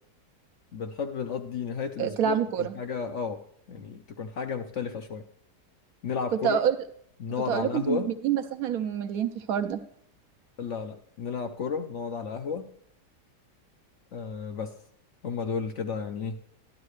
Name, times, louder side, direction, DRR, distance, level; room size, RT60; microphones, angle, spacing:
voice 1, 0.7-3.4 3.7-5.2 6.0-6.6 7.2-8.1 10.6-12.7 14.1-14.7 15.2-16.4, left 6 dB, 60° left, 6 dB, 0.8 m, -33 dB
voice 2, 2.0-2.7 6.4-6.8 7.5-9.8, right 9 dB, 65° right, 8 dB, 1.1 m, -27 dB
12.0 x 11.0 x 3.2 m, 0.68 s
omnidirectional pair, 1.7 m